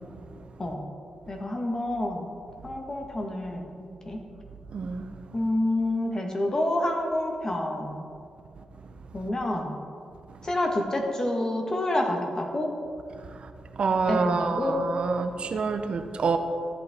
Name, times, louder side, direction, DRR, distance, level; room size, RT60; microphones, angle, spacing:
voice 1, 1.3-2.3 2.6-4.2 5.3-8.0 9.1-9.7 10.4-12.7 14.1-14.8, left 1 dB, 30° left, 2 dB, 1.3 m, -28 dB
voice 2, 4.7-5.1 13.4-13.5 13.8-16.4, right 5 dB, 60° right, 7 dB, 0.8 m, -27 dB
13.5 x 8.4 x 3.5 m, 2.4 s
wide cardioid pair, 110°, 2 cm